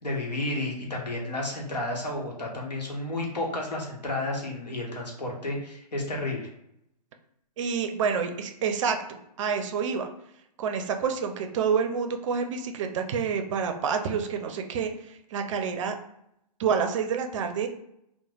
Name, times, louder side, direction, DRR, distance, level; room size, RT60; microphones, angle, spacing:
voice 1, 0.0-6.5, left 2 dB, 90° left, -1 dB, 0.9 m, -31 dB
voice 2, 7.6-10.1 10.6-16.0 16.6-17.7, right 6 dB, 50° right, 6 dB, 0.4 m, -28 dB
3.1 x 2.1 x 2.3 m, 0.78 s
hypercardioid pair, 130°, 21 cm